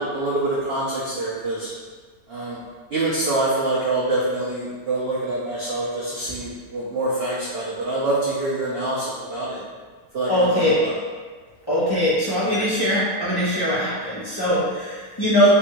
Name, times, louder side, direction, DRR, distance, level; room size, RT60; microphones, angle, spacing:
voice 1, 0.0-1.7 2.3-2.6 2.9-9.6 10.1-10.9, right 2 dB, 70° right, -6 dB, 0.5 m, -25 dB
voice 2, 10.3-10.7 11.7-15.5, equal, 15° left, -11 dB, 0.9 m, -21 dB
3.3 x 2.6 x 4.4 m, 1.5 s
omnidirectional pair, 1.8 m